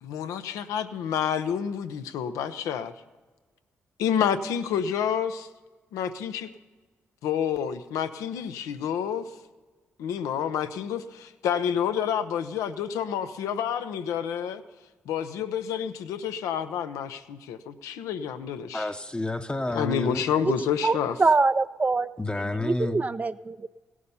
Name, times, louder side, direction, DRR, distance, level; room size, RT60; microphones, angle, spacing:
voice 1, 0.0-2.9 4.0-5.5 5.9-6.5 7.2-9.3 10.0-14.6 15.1-18.9 19.7-21.1, left 8 dB, 85° left, 0.7 m, -29 dB
voice 2, 18.7-20.5 22.2-23.0, left 2 dB, 20° left, 0.8 m, -30 dB
voice 3, 20.8-22.1 22.6-23.7, right 3 dB, 30° right, 0.4 m, -24 dB
17.0 x 11.0 x 5.6 m
supercardioid pair, 50°, 5 cm